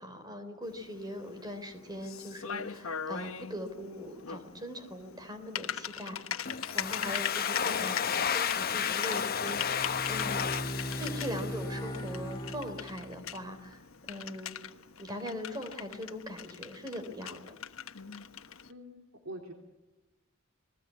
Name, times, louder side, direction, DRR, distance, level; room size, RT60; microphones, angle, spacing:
voice 1, 0.0-14.6 15.0-17.6, equal, 20° right, 8 dB, 3.7 m, -41 dB
Typing, 0.6-18.7, left 8 dB, 85° left, 1.2 m, -41 dB
Domestic sounds home sounds, 6.5-12.1, left 7 dB, 45° left, 0.9 m, -32 dB
Bowed string instrument, 9.4-13.4, equal, 25° left, 2.9 m, -39 dB
voice 2, 18.7-19.5, right 1 dB, 80° right, 2 dB, 3.1 m, -44 dB
29.0 x 20.5 x 8.4 m, 1.1 s
head